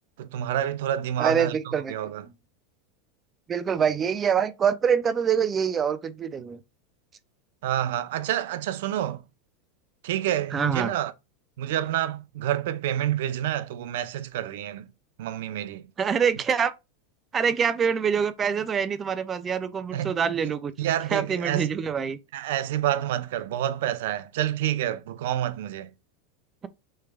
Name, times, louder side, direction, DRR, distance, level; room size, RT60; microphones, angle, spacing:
voice 1, 0.2-2.2 7.6-9.2 10.0-11.1 11.6-14.9 15.2-15.9 19.9-20.1 20.4-20.5 20.8-21.7 22.3-25.9, right 12 dB, 70° right, 0.7 m, -28 dB
voice 2, 1.2-2.0 3.5-6.6 10.5-10.9 16.0-16.7 17.3-20.7 21.1-22.2, right 7 dB, 20° right, 0.4 m, -25 dB
6.5 x 3.3 x 2.3 m
supercardioid pair, 160°, 0 cm